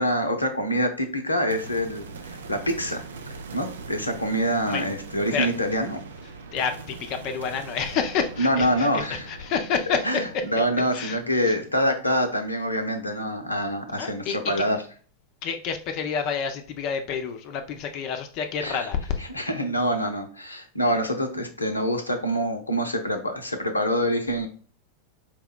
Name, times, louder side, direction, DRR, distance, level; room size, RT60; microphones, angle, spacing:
voice 1, 0.0-3.0 3.5-6.0 8.4-9.2 10.1-10.2 10.5-14.8 18.6-18.8 19.3-24.5, equal, 85° left, 5 dB, 0.6 m, -25 dB
sound 1, 1.5-12.9, right 4 dB, 70° right, 0.5 m, -42 dB
voice 2, 6.5-10.2 10.9-11.6 14.0-14.5 15.4-19.2, left 6 dB, 45° left, 6 dB, 0.6 m, -29 dB
4.7 x 2.2 x 3.6 m, 0.41 s
figure-of-eight pair, 90°, 0 cm